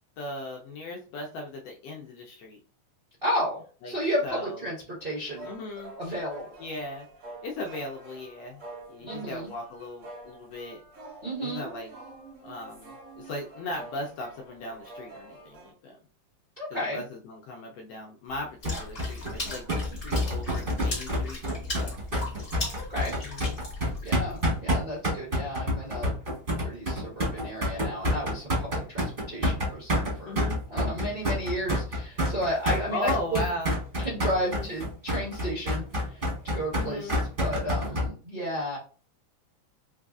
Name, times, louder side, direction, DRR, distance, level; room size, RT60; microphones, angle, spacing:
voice 1, 0.2-2.6 3.8-3.9 4.2-4.6 5.4-5.9 6.6-7.1 7.4-8.6 8.9-10.8 11.4-11.9 12.4-16.0 16.7-22.0 23.2-23.6 30.2-30.6 32.9-33.8 34.4-34.7 36.7-37.2, left 1 dB, 75° left, 1 dB, 1.5 m, -37 dB
voice 2, 3.2-5.5 6.0-6.5 9.0-9.5 11.2-11.7 16.6-17.0 22.7-23.1 24.0-26.2 26.6-30.4 30.7-33.5 34.0-38.8, equal, 85° right, -7 dB, 0.5 m, -33 dB
sound 1, 5.3-15.7, right 2 dB, 60° right, 1.0 m, -47 dB
Water / Splash splatter, 18.6-24.4, left 1 dB, 45° left, 0.8 m, -38 dB
Sonicsnaps-OM-FR-poubelle, 18.6-38.1, equal, 40° right, 0.7 m, -28 dB
4.7 x 2.4 x 2.4 m, 0.38 s
omnidirectional pair, 3.4 m